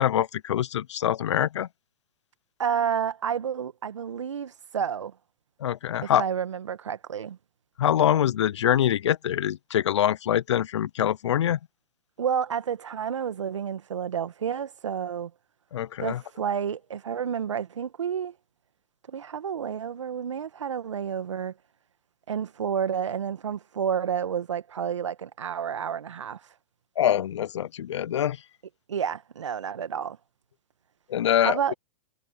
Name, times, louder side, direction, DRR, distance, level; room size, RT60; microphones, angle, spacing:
voice 1, 0.0-1.7 5.6-6.2 7.8-11.6 15.7-16.2 27.0-28.4 31.1-31.6, left 10 dB, 75° left, 0.7 m, -24 dB
voice 2, 2.6-5.1 6.0-7.4 12.2-15.3 16.0-18.3 19.1-21.5 22.3-26.4 28.9-30.2 31.4-31.7, right 8 dB, 80° right, 1.9 m, -30 dB
hypercardioid pair, 110°, 15 cm